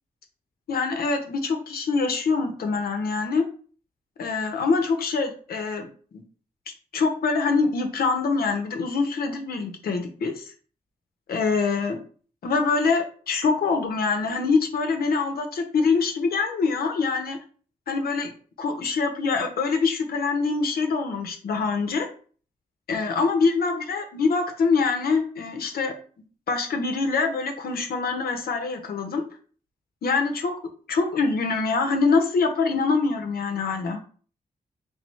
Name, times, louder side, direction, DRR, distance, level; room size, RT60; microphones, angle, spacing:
voice 1, 0.7-3.4 4.2-6.2 6.9-10.5 11.3-12.0 12.4-17.4 17.9-18.3 18.6-22.1 22.9-25.9 26.5-29.2 30.0-30.5 30.9-34.0, left 4 dB, 85° left, 5 dB, 0.8 m, -24 dB
3.5 x 3.4 x 3.1 m, 0.42 s
cardioid pair, 70°, 15 cm